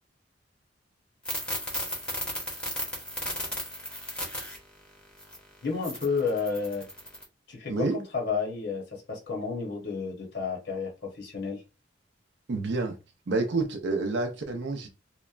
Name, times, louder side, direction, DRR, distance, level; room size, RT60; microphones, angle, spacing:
sound 1, 1.2-4.6 5.2-5.4 5.8-7.2, equal, 5° left, 0.7 m, -34 dB
voice 1, 5.6-6.9 7.5-11.6, left 5 dB, 60° left, 0.9 m, -31 dB
voice 2, 12.5-13.0 13.3-14.9, right 3 dB, 65° right, 0.5 m, -28 dB
2.9 x 2.1 x 2.4 m
head